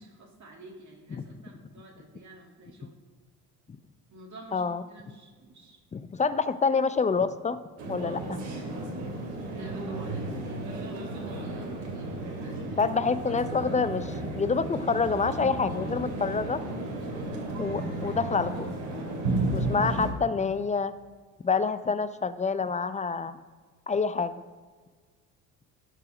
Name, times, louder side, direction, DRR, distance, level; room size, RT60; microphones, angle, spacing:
voice 1, 0.0-3.0 4.1-4.6 4.9-5.8 9.6-12.9 17.0-17.3, right 2 dB, 40° right, 0 dB, 2.2 m, -50 dB
voice 2, 4.5-4.8 5.9-7.6 7.9-8.4 12.8-16.6 17.6-18.7 19.5-20.9 21.4-23.4 23.9-24.4, left 5 dB, 15° left, 13 dB, 0.5 m, -27 dB
sound 1, 7.8-20.1, right 2 dB, 65° right, 2.6 m, -33 dB
13.5 x 4.8 x 4.9 m, 1.5 s
hypercardioid pair, 60°, 46 cm